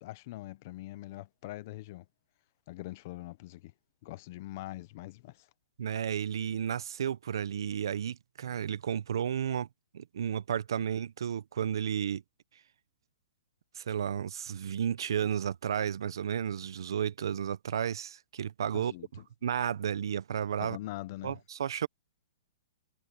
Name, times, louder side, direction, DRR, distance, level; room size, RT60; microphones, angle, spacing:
voice 1, 0.0-2.1 2.7-3.7 4.0-5.5 18.7-19.3 20.6-21.4, left 17 dB, 35° left, 0.8 m, -43 dB
voice 2, 5.8-9.7 9.9-12.2 13.8-18.9 19.4-20.8 21.2-21.9, right 8 dB, 65° right, 0.7 m, -32 dB
hypercardioid pair, 170°, 3 cm